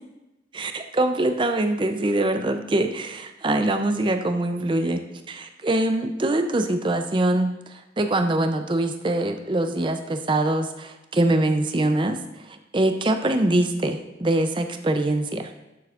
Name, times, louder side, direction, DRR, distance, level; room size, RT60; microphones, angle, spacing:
voice 1, 0.5-12.2 12.5-15.5, right 1 dB, 25° right, 7 dB, 0.5 m, -23 dB
11.5 x 7.7 x 2.4 m, 0.99 s
head